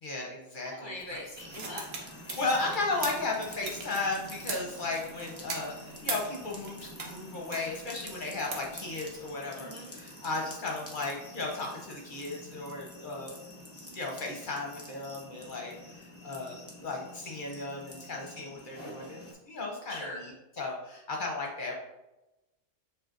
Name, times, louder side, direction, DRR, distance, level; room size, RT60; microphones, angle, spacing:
voice 1, 0.0-1.2 2.3-13.4 13.9-21.8, left 3 dB, 50° left, -1 dB, 0.8 m, -35 dB
voice 2, 0.6-2.3 9.6-9.9 19.9-20.2, left 1 dB, 30° right, -3 dB, 0.5 m, -42 dB
sound 1, 1.0-7.2 7.5-9.3, right 4 dB, 60° right, 1.0 m, -40 dB
sound 2, 1.4-19.3, left 1 dB, 15° left, 0.6 m, -48 dB
7.3 x 2.5 x 2.5 m, 0.98 s
omnidirectional pair, 1.3 m